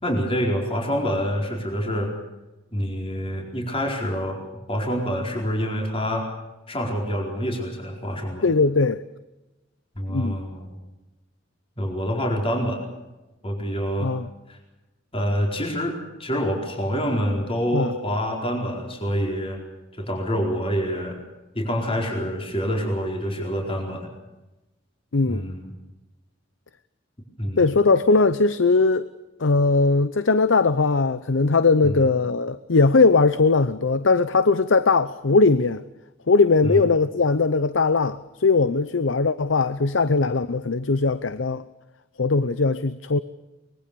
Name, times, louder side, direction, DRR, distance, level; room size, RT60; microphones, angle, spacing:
voice 1, 0.0-2.1 2.7-4.4 4.7-6.3 6.7-8.5 9.9-10.7 11.8-12.8 13.4-14.1 14.5-14.6 15.1-19.6 20.0-21.2 21.5-24.1 25.3-25.7 27.4-27.7 31.8-32.0 36.6-36.8, equal, 30° left, 4.5 m, -26 dB
voice 2, 8.4-9.0 10.1-10.4 14.0-14.2 17.7-17.9 25.1-25.4 27.6-29.1 29.4-35.8 36.3-41.6 42.2-43.2, left 3 dB, 75° left, 0.7 m, -19 dB
24.0 x 21.0 x 6.9 m
head